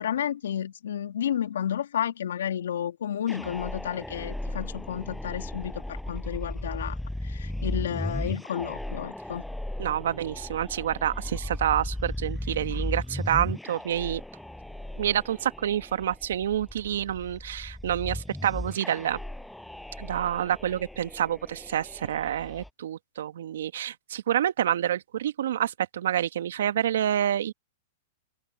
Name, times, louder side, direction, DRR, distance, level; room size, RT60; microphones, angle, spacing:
voice 1, 0.0-7.0 7.2-9.4, left 9 dB, 80° left, 2.6 m, -31 dB
sound 1, 3.3-22.7, left 1 dB, 5° left, 5.8 m, -36 dB
voice 2, 9.8-14.2 15.0-19.2 20.0-27.5, right 10 dB, 75° right, 1.6 m, -28 dB
open air
hypercardioid pair, 120°, 0 cm